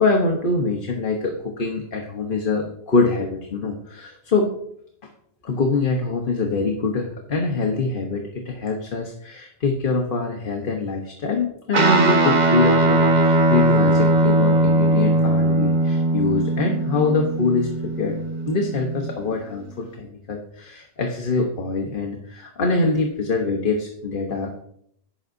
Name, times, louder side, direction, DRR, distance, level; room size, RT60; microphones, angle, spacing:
voice 1, 0.0-4.5 5.4-24.6, left 3 dB, 55° left, 2 dB, 1.2 m, -24 dB
Guitar, 11.7-19.4, right 2 dB, 45° right, 1.1 m, -19 dB
11.5 x 9.0 x 2.6 m, 0.70 s
omnidirectional pair, 1.1 m